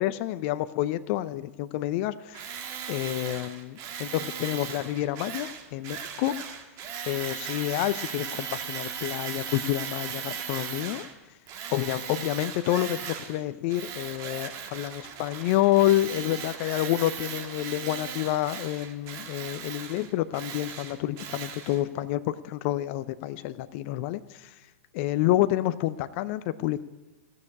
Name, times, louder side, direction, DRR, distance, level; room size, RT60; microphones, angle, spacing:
voice 1, 0.0-2.5 2.9-6.3 7.1-11.1 11.7-24.5 24.9-26.8, left 14 dB, 50° left, 13 dB, 0.6 m, -28 dB
Tools, 2.3-11.1 11.5-13.4 13.7-21.8, right 8 dB, 40° right, 2.0 m, -38 dB
15.0 x 6.7 x 9.7 m, 1.1 s
hypercardioid pair, 115°, 8 cm